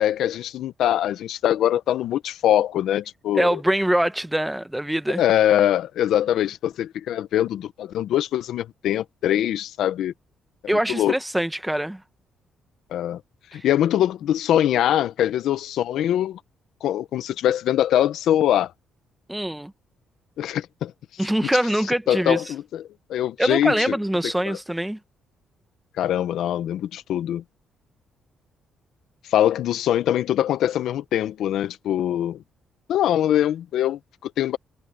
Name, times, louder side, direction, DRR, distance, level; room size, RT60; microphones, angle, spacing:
voice 1, 0.0-3.6 5.1-10.1 10.9-11.1 12.9-13.2 13.5-16.4 16.8-18.7 20.4-20.9 22.1-22.8 23.1-23.8 24.5-24.6 26.0-27.4 29.3-32.4 32.9-34.6, left 11 dB, 80° left, 1.0 m, -23 dB
voice 2, 3.3-5.2 10.7-12.0 13.5-13.6 19.3-19.7 21.2-22.4 23.4-25.0, right 1 dB, 5° right, 1.3 m, -23 dB
cardioid pair, 90°, 0 cm